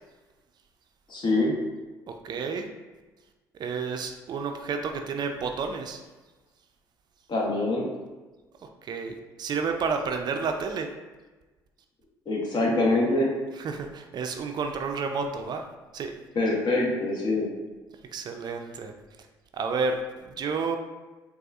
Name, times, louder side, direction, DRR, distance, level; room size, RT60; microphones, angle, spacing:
voice 1, 1.1-1.5 7.3-7.9 12.3-13.3 16.3-17.5, left 2 dB, 50° left, -2 dB, 1.0 m, -24 dB
voice 2, 2.2-2.7 3.6-6.0 8.8-10.9 13.6-15.6 15.9-16.1 18.1-18.9 19.6-20.0 20.2-20.8, right 5 dB, 50° right, 5 dB, 0.4 m, -30 dB
4.1 x 2.3 x 2.4 m, 1.2 s
hypercardioid pair, 60°, 9 cm